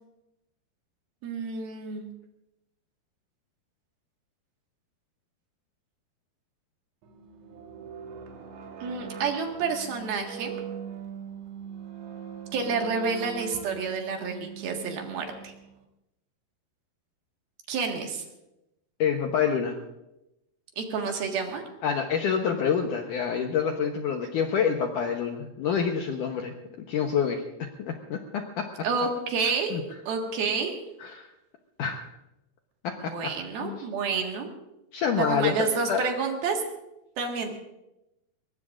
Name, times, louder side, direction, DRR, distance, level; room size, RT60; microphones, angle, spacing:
voice 1, 1.2-2.1 8.8-10.6 12.5-15.5 17.7-18.2 20.8-21.6 28.8-29.8 30.1-30.8 33.0-34.5 35.2-36.6 37.2-37.5, right 5 dB, 65° right, 2 dB, 3.4 m, -29 dB
sound 1, 7.0-15.8, right 7 dB, 85° right, 3.6 m, -41 dB
voice 2, 19.0-19.8 21.8-26.5 26.9-28.7 29.7-29.8 31.0-31.3 31.8-32.0 32.8-33.1 33.6-33.9 34.9-35.5 35.9-36.0, left 7 dB, 70° left, 3 dB, 2.0 m, -27 dB
22.5 x 20.5 x 2.5 m, 0.90 s
omnidirectional pair, 4.8 m